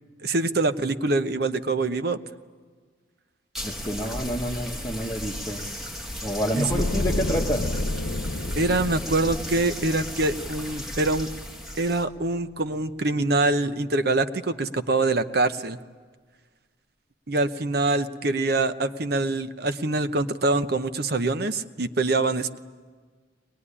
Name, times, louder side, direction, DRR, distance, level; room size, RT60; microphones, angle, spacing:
voice 1, 0.2-2.2 6.6-6.8 8.6-11.3 11.8-15.8 17.3-22.6, right 2 dB, 55° right, 10 dB, 0.8 m, -24 dB
sound 1, 3.5-12.1, left 1 dB, ahead, 1.4 m, -35 dB
voice 2, 3.6-5.6 6.2-7.6, equal, 15° left, -2 dB, 1.3 m, -28 dB
sound 2, 6.7-11.8 12.0-12.3, left 1 dB, 80° left, 1.1 m, -31 dB
22.5 x 21.0 x 9.9 m, 1.5 s
head